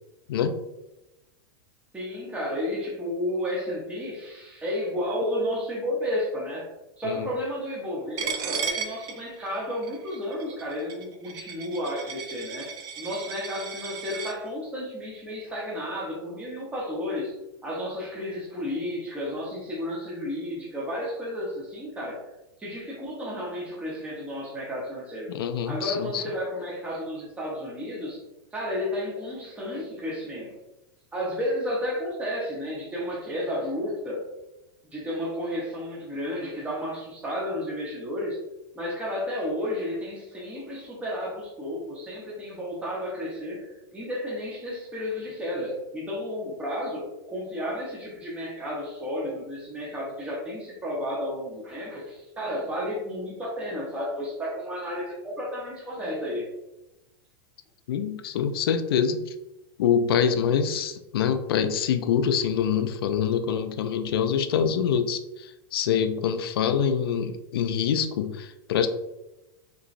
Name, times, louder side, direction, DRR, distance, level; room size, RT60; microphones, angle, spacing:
voice 1, 1.9-6.7 7.0-17.3 17.6-22.2 22.6-25.3 25.7-28.2 28.5-30.5 31.1-34.3 34.9-38.4 38.7-56.5, left 1 dB, 10° right, -4 dB, 0.8 m, -32 dB
Coin (dropping), 8.2-14.3, right 6 dB, 30° right, 0.4 m, -35 dB
voice 2, 25.3-26.2 57.9-59.3 59.8-68.9, left 7 dB, 85° left, 8 dB, 0.4 m, -25 dB
3.7 x 3.0 x 2.5 m, 0.95 s
supercardioid pair, 145°, 12 cm